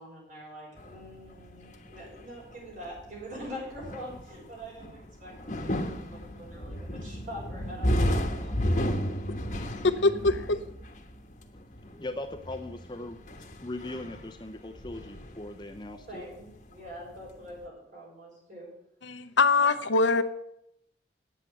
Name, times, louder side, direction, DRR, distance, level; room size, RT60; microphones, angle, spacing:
voice 1, 0.0-9.1 16.1-18.7, equal, 45° right, -3 dB, 6.2 m, -44 dB
sound 1, 0.8-16.7 16.9-17.6, equal, 40° left, 1.2 m, -33 dB
voice 2, 9.8-10.6 19.0-20.2, left 3 dB, 85° left, 10 dB, 0.8 m, -23 dB
voice 3, 11.9-16.2, left 2 dB, 25° left, 5 dB, 0.7 m, -39 dB
9.6 x 8.3 x 7.9 m, 0.77 s
head